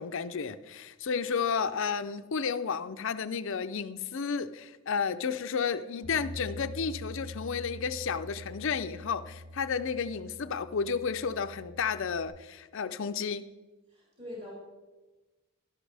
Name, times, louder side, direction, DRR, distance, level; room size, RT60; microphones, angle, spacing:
voice 1, 0.0-13.5, left 6 dB, 60° left, 12 dB, 0.5 m, -32 dB
Bass guitar, 6.0-12.3, left 1 dB, 55° right, 2.2 m, -45 dB
voice 2, 13.9-14.5, left 1 dB, 25° right, -6 dB, 4.0 m, -43 dB
12.0 x 11.5 x 3.4 m, 1.2 s
head